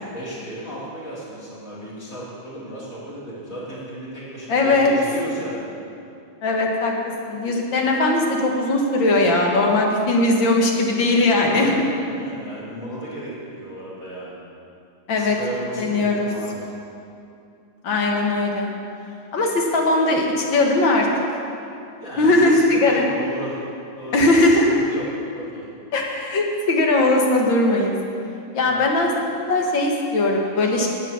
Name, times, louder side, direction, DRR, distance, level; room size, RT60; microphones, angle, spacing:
voice 1, 0.1-5.7 11.3-14.4 15.1-16.8 22.0-23.6 24.0-25.1 25.3-25.7 28.6-28.8, right 1 dB, 40° left, -8 dB, 3.7 m, -34 dB
voice 2, 4.5-4.9 6.4-7.0 7.3-11.8 15.1-15.4 15.8-16.3 17.8-18.7 19.3-21.1 22.2-23.0 24.1-24.7 25.9-27.9 28.5-30.9, left 2 dB, 70° left, 0 dB, 2.1 m, -19 dB
11.5 x 8.8 x 6.2 m, 2.6 s
omnidirectional pair, 2.2 m